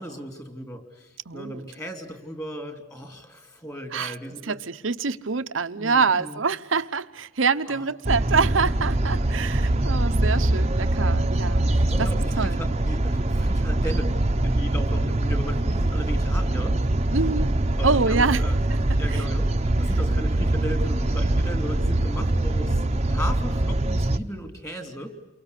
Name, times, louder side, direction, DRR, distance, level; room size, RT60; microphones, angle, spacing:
voice 1, 0.0-4.6 5.7-6.4 7.7-7.8 11.8-16.9 17.8-18.6 19.0-25.2, equal, 15° left, 3.1 m, -36 dB
voice 2, 1.3-1.6 3.9-4.1 4.4-12.1 12.4-12.6 17.1-17.5 17.8-18.4 19.1-19.2, right 4 dB, 80° right, 1.0 m, -25 dB
sound 1, 8.0-24.2, right 1 dB, 35° right, 1.0 m, -23 dB
29.0 x 23.5 x 8.3 m
head